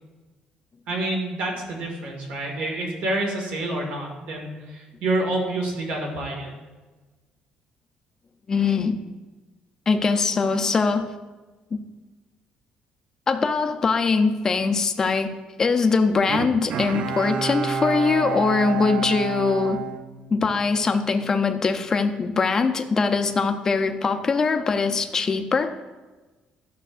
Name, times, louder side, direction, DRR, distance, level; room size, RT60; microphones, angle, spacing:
voice 1, 0.9-6.5, right 2 dB, 70° right, 0 dB, 1.9 m, -28 dB
voice 2, 8.5-9.0 9.9-11.1 11.7-11.8 13.3-19.8 20.3-25.7, left 4 dB, 20° left, 6 dB, 0.5 m, -22 dB
Bowed string instrument, 16.3-20.8 21.2-21.3, right 7 dB, 50° right, 0.4 m, -29 dB
12.5 x 6.3 x 2.5 m, 1.2 s
cardioid pair, 175°, 3 cm